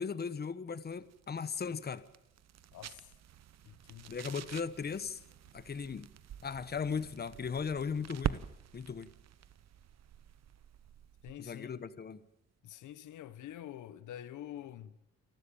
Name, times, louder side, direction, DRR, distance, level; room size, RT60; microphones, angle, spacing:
voice 1, 0.0-2.0 4.1-5.2 5.5-6.1 6.4-8.4 8.7-9.1 11.4-12.2, left 6 dB, 30° left, 1.2 m, -37 dB
sound 1, 0.9-11.5, right 11 dB, 60° right, 1.0 m, -45 dB
voice 2, 2.7-3.1 3.6-4.2 11.2-11.8 12.6-15.0, left 11 dB, 80° left, 1.4 m, -47 dB
28.5 x 12.5 x 8.8 m
cardioid pair, 90°, 30 cm